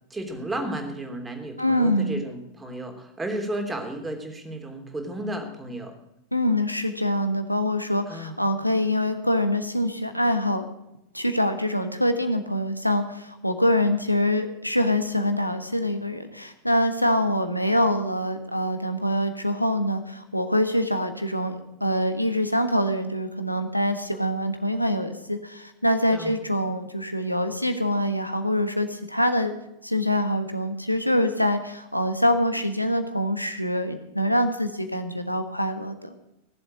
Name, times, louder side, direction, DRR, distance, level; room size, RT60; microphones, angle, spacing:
voice 1, 0.1-5.9 8.1-8.4 26.1-26.4, right 1 dB, 10° right, 4 dB, 3.2 m, -33 dB
voice 2, 1.6-2.2 6.3-10.7 11.1-29.5 29.8-36.1, left 1 dB, 90° left, 8 dB, 1.3 m, -25 dB
17.5 x 7.8 x 8.7 m, 0.85 s
figure-of-eight pair, 90°, 0 cm